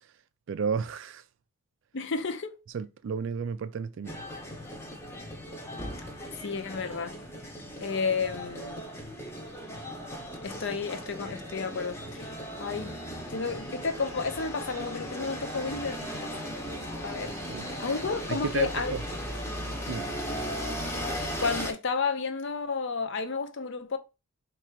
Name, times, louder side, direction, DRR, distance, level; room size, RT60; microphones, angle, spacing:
voice 1, 0.5-1.2 2.7-4.2 17.5-17.7 18.3-19.0 19.6-20.1, right 6 dB, 55° right, 0.3 m, -33 dB
voice 2, 1.9-2.6 6.4-7.2 7.8-8.8 10.4-12.3 12.6-13.0 13.3-16.3 17.0-17.4 17.8-18.9 21.4-24.0, left 4 dB, 55° left, 0.5 m, -31 dB
sound 1, 4.1-21.7, equal, 10° left, 0.7 m, -37 dB
3.7 x 2.4 x 4.4 m
head